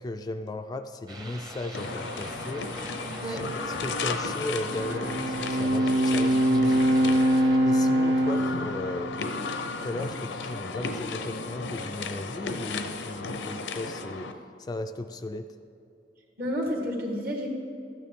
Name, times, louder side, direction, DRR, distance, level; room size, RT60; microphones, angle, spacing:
voice 1, 0.0-2.7 3.2-9.1 9.8-15.5, left 2 dB, 20° left, 8 dB, 0.3 m, -36 dB
sound 1, 1.1-7.6, right 1 dB, 20° right, 0.8 m, -42 dB
sound 2, 1.7-14.3, left 4 dB, 75° left, 0.6 m, -34 dB
voice 2, 3.2-3.5 16.4-17.5, equal, 55° right, 0 dB, 1.7 m, -30 dB
Bowed string instrument, 4.6-10.1, right 1 dB, 70° right, 0.6 m, -24 dB
13.0 x 9.2 x 3.6 m, 2.5 s
head